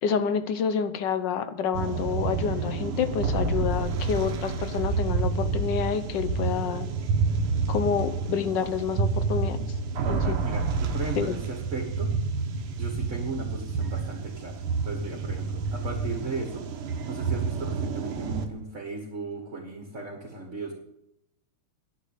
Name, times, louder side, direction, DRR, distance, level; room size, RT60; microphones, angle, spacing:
voice 1, 0.0-6.9 7.7-9.7 10.1-10.4 11.2-11.4, left 7 dB, 60° left, 11 dB, 1.5 m, -28 dB
sound 1, 1.7-18.5, right 4 dB, 85° right, 2.2 m, -29 dB
voice 2, 10.0-12.1 12.7-20.7, right 3 dB, 35° right, 3 dB, 2.0 m, -36 dB
11.0 x 9.5 x 8.4 m, 0.83 s
omnidirectional pair, 2.4 m